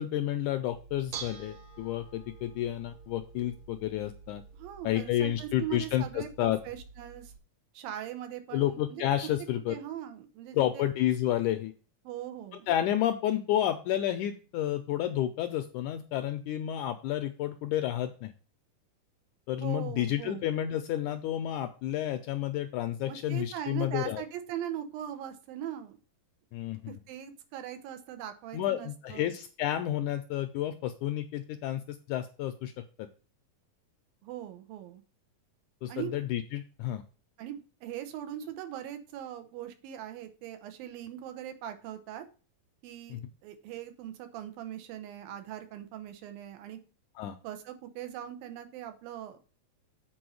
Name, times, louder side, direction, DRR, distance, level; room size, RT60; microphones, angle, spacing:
voice 1, 0.0-4.4 4.8-6.6 8.5-9.8 10.5-11.7 12.7-18.3 19.5-24.2 26.5-27.0 28.5-32.7 35.8-37.0 43.1-43.2 47.2-47.4, left 12 dB, 80° left, 8 dB, 1.8 m, -30 dB
Bell / Dishes pots and pans, 0.7-7.4, right 6 dB, 65° right, 1.4 m, -48 dB
voice 2, 4.5-7.3 7.7-9.0 9.7-10.9 12.0-12.7 19.6-20.4 23.1-26.0 26.9-29.3 34.2-35.0 35.9-36.1 37.4-42.2 42.8-46.8 47.4-49.4, right 11 dB, 85° right, 8 dB, 2.8 m, -40 dB
7.8 x 4.3 x 6.2 m, 0.37 s
omnidirectional pair, 4.0 m